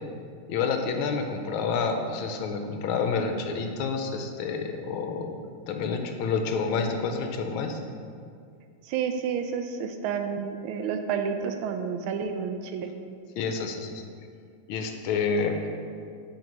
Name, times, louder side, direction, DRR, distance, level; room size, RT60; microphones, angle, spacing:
voice 1, 0.5-7.8 13.4-14.0 14.7-15.6, left 5 dB, 75° left, 5 dB, 1.4 m, -29 dB
voice 2, 8.8-12.9, right 6 dB, 80° right, 6 dB, 1.4 m, -30 dB
6.3 x 4.7 x 5.2 m, 2.3 s
omnidirectional pair, 2.4 m